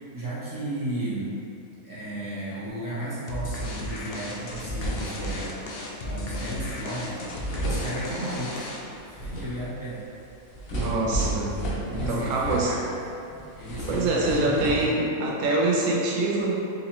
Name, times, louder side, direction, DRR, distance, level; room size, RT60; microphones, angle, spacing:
voice 1, 0.1-1.3 1.8-5.6 6.0-7.3 7.6-8.7 9.0-10.0 11.9-12.9 13.6-15.1, right 1 dB, 25° right, -10 dB, 0.4 m, -34 dB
sound 1, 3.3-9.0, left 1 dB, 90° left, 0.5 m, -34 dB
sound 2, 4.5-5.7 6.9-7.0 7.3-8.5 8.9-13.1 13.4-14.8, right 1 dB, 70° left, 1.1 m, -33 dB
voice 2, 10.7-11.5 11.9-12.7 13.3-13.4 13.9-16.5, right 2 dB, 65° right, -2 dB, 0.9 m, -25 dB
3.9 x 2.8 x 2.9 m, 2.7 s
omnidirectional pair, 1.6 m